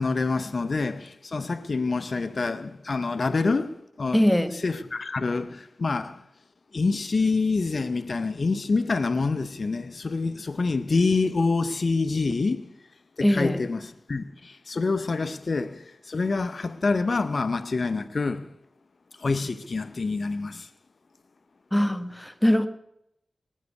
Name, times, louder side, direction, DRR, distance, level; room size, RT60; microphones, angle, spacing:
voice 1, 0.0-6.2 6.7-12.7 13.2-18.5 19.2-20.7, left 3 dB, 65° left, 0.7 m, -27 dB
voice 2, 4.1-4.5 13.2-13.6 21.7-22.7, equal, 10° left, 1.4 m, -22 dB
20.0 x 7.5 x 8.2 m
cardioid pair, 40°, 0 cm